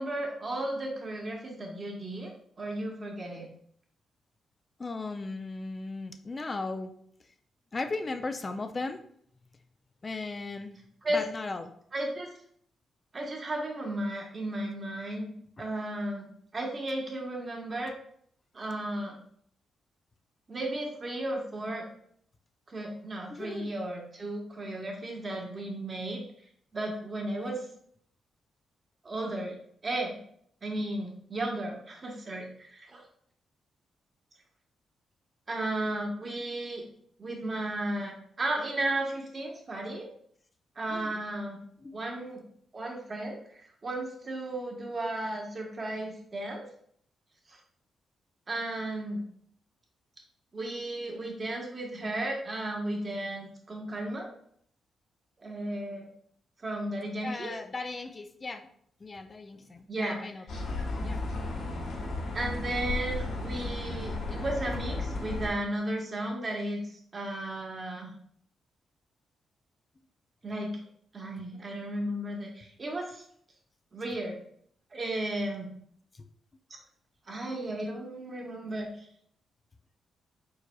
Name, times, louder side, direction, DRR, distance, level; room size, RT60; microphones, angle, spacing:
voice 1, 0.0-2.3 2.6-3.5 11.0-11.2 11.9-12.3 13.1-15.3 15.6-17.9 18.5-19.2 20.5-21.8 22.7-26.2 26.7-27.6 29.0-29.6 29.8-30.1 30.6-33.0 35.5-36.8 37.2-40.1 40.8-41.6 41.9-42.4 42.7-46.6 47.5-47.6 48.5-49.2 50.5-54.3 55.4-56.1 56.6-57.5 59.9-60.2 62.3-68.1 70.4-70.7 71.1-73.2 73.9-74.4 74.9-75.7 77.3-79.1, right 1 dB, 40° right, 0 dB, 1.2 m, -34 dB
voice 2, 4.8-6.9 7.7-9.0 10.0-10.8 11.1-11.7 15.6-15.7 23.3-23.7 40.9-41.2 41.8-42.0 57.2-58.7 59.0-60.4 61.0-61.2 76.1-76.3, left 3 dB, 35° left, 7 dB, 0.4 m, -37 dB
sound 1, 60.5-65.5, left 2 dB, 80° left, 1.8 m, -34 dB
4.8 x 4.1 x 2.3 m, 0.64 s
cardioid pair, 85°, 0 cm